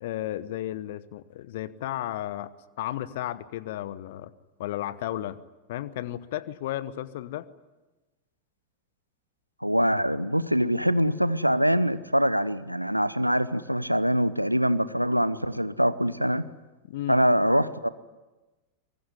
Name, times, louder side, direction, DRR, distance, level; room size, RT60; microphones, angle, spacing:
voice 1, 0.0-2.5 2.8-4.3 4.6-5.4 5.7-7.5 16.9-17.2, left 13 dB, 55° left, 17 dB, 1.0 m, -33 dB
voice 2, 9.6-16.5 17.1-17.9, equal, 90° right, 15 dB, 0.9 m, -24 dB
24.0 x 21.0 x 9.8 m, 1.1 s
figure-of-eight pair, 90°, 0 cm